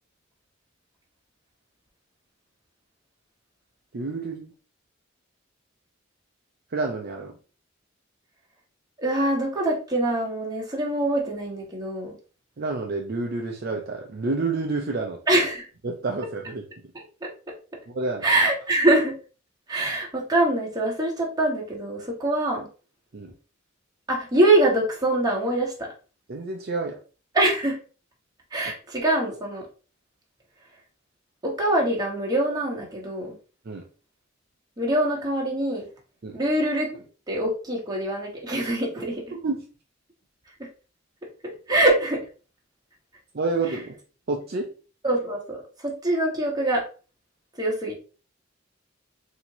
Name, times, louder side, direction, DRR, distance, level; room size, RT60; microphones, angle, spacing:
voice 1, 3.9-4.5 6.7-7.3 12.6-15.2 15.8-16.6 17.9-18.2 23.1-23.3 26.3-27.0 33.7-33.8 36.2-36.4 39.4-39.6 43.3-44.0 44.3-44.7, right 3 dB, 55° right, 1 dB, 0.6 m, -29 dB
voice 2, 9.0-12.1 15.3-15.7 18.2-19.2 19.7-22.7 24.1-25.9 27.3-27.8 28.5-29.7 31.4-33.3 34.8-35.9 36.3-39.2 40.6-40.7 41.4-42.2 43.7-43.8 45.0-46.8 47.6-48.0, right 1 dB, 20° right, -3 dB, 1.3 m, -24 dB
4.2 x 2.8 x 2.9 m, 0.36 s
head